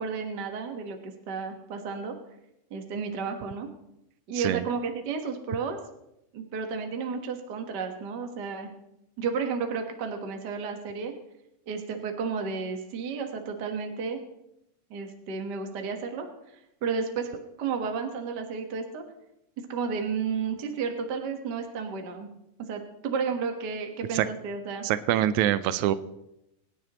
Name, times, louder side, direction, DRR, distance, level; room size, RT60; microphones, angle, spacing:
voice 1, 0.0-2.1 2.7-3.7 4.3-5.8 6.3-8.7 9.2-11.1 11.7-14.2 14.9-16.3 16.8-17.3 17.6-19.0 19.7-22.3 22.7-24.8, right 5 dB, 60° right, 5 dB, 1.1 m, -32 dB
voice 2, 24.8-25.9, right 12 dB, 80° right, 14 dB, 1.7 m, -24 dB
23.0 x 10.0 x 3.0 m, 0.84 s
omnidirectional pair, 4.0 m